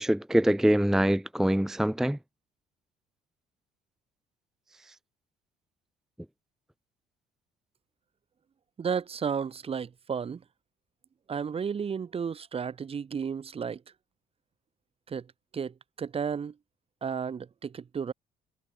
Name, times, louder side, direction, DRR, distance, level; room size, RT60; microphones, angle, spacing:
voice 1, 0.0-2.2, equal, 5° right, 0.6 m, -24 dB
voice 2, 8.8-10.4 11.3-13.8 15.1-15.3 15.5-16.5 17.0-18.1, right 6 dB, 35° right, 2.1 m, -33 dB
cardioid pair, 110°, 17 cm